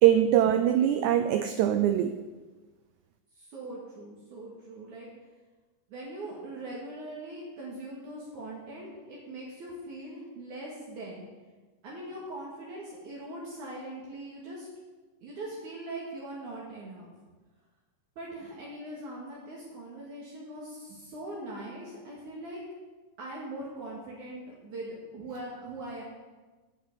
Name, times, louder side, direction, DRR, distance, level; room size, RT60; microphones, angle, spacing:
voice 1, 0.0-2.2, right 11 dB, 80° right, 8 dB, 1.8 m, -22 dB
voice 2, 3.3-5.1 5.9-11.3 11.8-14.7 15.2-17.1 18.2-22.6 23.2-26.0, right 1 dB, 60° right, -5 dB, 3.3 m, -41 dB
14.0 x 5.6 x 8.5 m, 1.3 s
omnidirectional pair, 4.0 m